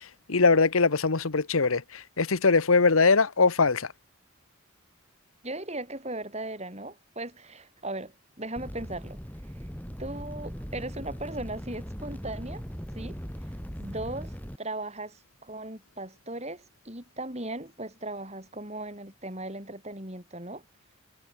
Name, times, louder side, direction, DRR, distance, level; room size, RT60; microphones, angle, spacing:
voice 1, 0.3-3.9, left 4 dB, 80° left, 1.2 m, -22 dB
voice 2, 5.4-9.2 10.0-12.6 12.9-13.2 13.8-20.6, right 2 dB, 30° right, 7.9 m, -38 dB
sound 1, 8.6-14.6, equal, 10° left, 6.3 m, -39 dB
head